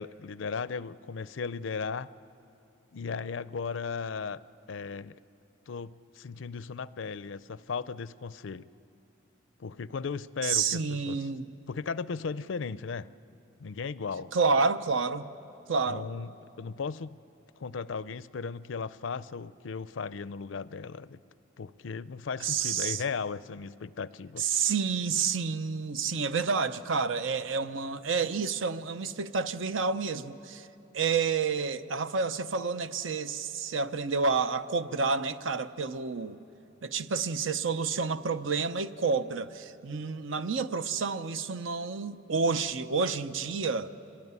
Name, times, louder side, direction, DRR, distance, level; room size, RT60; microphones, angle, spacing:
voice 1, 0.0-2.1 2.9-4.4 4.7-5.1 5.7-8.7 9.6-11.2 11.7-13.1 13.6-14.3 15.9-17.2 17.6-21.2 21.6-24.5, left 5 dB, 80° left, 17 dB, 0.5 m, -36 dB
voice 2, 10.4-11.5 14.3-15.3 15.7-16.1 22.4-23.0 24.4-30.7 30.9-36.4 36.8-43.9, right 5 dB, 85° right, 11 dB, 0.7 m, -29 dB
25.5 x 17.5 x 9.6 m, 2.8 s
head